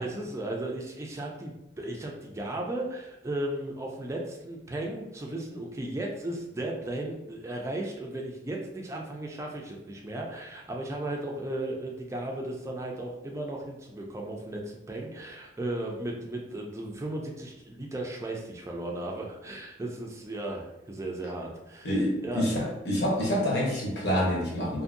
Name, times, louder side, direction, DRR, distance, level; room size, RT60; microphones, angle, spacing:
voice 1, 0.0-22.5, right 1 dB, 15° right, 0 dB, 0.3 m, -35 dB
voice 2, 21.8-24.8, equal, 60° left, -5 dB, 1.0 m, -27 dB
2.6 x 2.6 x 2.5 m, 0.93 s
head